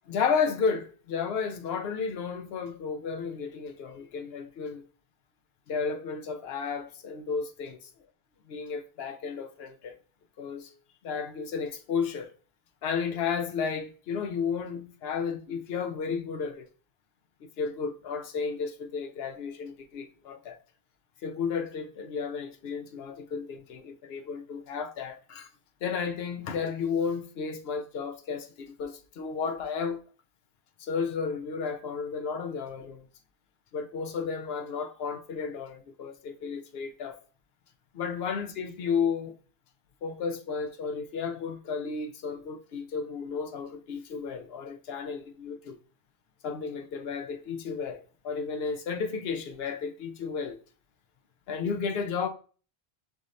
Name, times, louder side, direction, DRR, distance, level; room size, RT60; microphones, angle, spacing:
voice 1, 0.1-4.9 5.7-7.8 8.5-10.0 10.4-10.7 11.0-12.3 12.8-16.7 17.6-20.6 21.2-25.5 25.8-30.0 30.8-33.1 33.7-37.2 37.9-39.3 40.0-45.8 46.4-50.6 51.5-52.3, left 5 dB, 70° left, 0.8 m, -33 dB
5.4 x 3.1 x 2.6 m
omnidirectional pair, 1.1 m